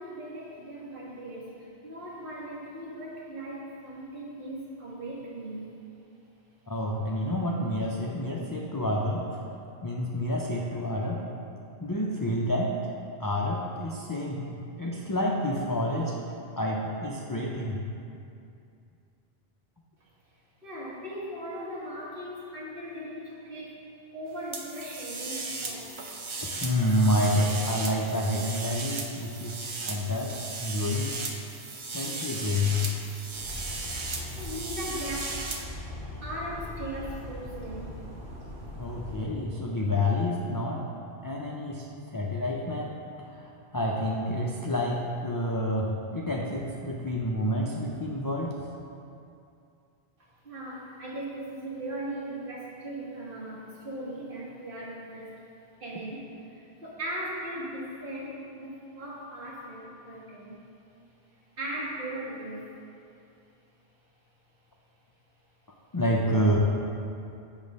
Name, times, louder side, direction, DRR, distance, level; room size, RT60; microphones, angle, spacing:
voice 1, 0.0-5.7 20.6-23.9 24.1-25.9 34.4-35.4 36.2-38.0 50.4-55.3 55.8-60.6 61.6-62.7, right 1 dB, 55° right, -6 dB, 1.5 m, -38 dB
voice 2, 6.7-9.4 9.8-11.2 11.8-12.9 13.2-14.5 14.8-16.2 16.6-17.8 26.6-31.2 31.9-32.9 38.8-40.8 41.2-48.6 65.9-66.6, left 1 dB, 35° left, -3 dB, 0.3 m, -29 dB
sound 1, 24.5-35.6, right 3 dB, 40° right, 0.5 m, -36 dB
sound 2, 33.3-39.2, left 1 dB, 5° right, 1.5 m, -40 dB
8.1 x 3.2 x 5.2 m, 2.6 s
omnidirectional pair, 1.1 m